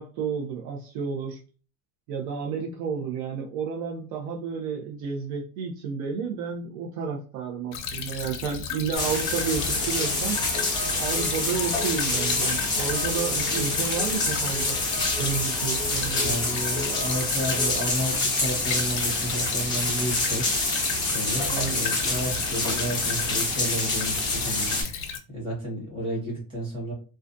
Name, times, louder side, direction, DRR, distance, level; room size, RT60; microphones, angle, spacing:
voice 1, 0.0-1.4 2.1-10.4 11.0-14.8 15.2-16.4 21.5-21.8, right 6 dB, 60° right, 0 dB, 0.6 m, -31 dB
Stream / Trickle dribble, 7.7-25.2, left 7 dB, 65° left, 0.5 m, -35 dB
sound 1, 8.9-24.8, left 2 dB, 10° left, 0.3 m, -27 dB
sound 2, 9.7-17.8, right 1 dB, 85° right, 1.4 m, -39 dB
voice 2, 16.1-20.5 21.1-26.9, right 1 dB, 15° right, -4 dB, 0.9 m, -32 dB
2.4 x 2.2 x 2.5 m, 0.37 s
cardioid pair, 175°, 40 cm